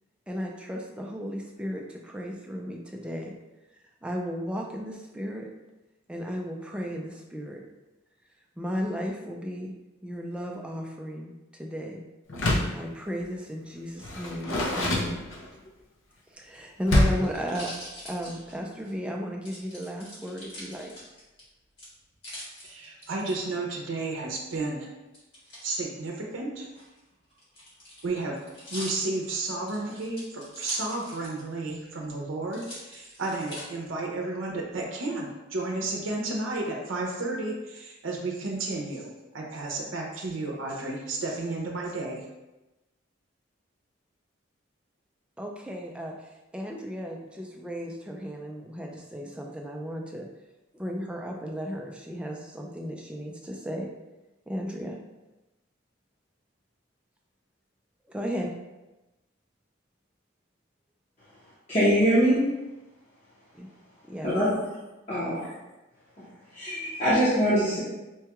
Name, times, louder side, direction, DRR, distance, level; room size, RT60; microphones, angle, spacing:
voice 1, 0.3-3.3 4.0-5.5 6.1-7.6 8.6-9.7 10.0-12.0 12.7-15.2 16.3-17.8 18.0-20.9 45.4-50.3 50.7-53.9 54.5-55.0 58.1-58.5 63.5-63.7 64.0-64.6, equal, 5° right, 0 dB, 0.3 m, -35 dB
Door, 12.3-12.8 14.0-15.7 16.9-17.4, left 1 dB, 75° left, 0.5 m, -25 dB
sound 1, 16.4-18.9 19.5-21.4 21.8-23.3 25.1-25.7 26.6-31.5 31.8-31.9 32.5-33.6 34.3-34.8, equal, 55° left, 1.5 m, -43 dB
voice 2, 22.6-24.9 25.6-26.7 28.0-28.4 28.7-42.2, right 2 dB, 80° right, 0 dB, 0.6 m, -32 dB
voice 3, 61.7-62.4 64.2-64.6 65.1-65.5 66.5-67.8, equal, 35° left, -10 dB, 0.8 m, -23 dB
4.5 x 2.3 x 2.9 m, 1.0 s
head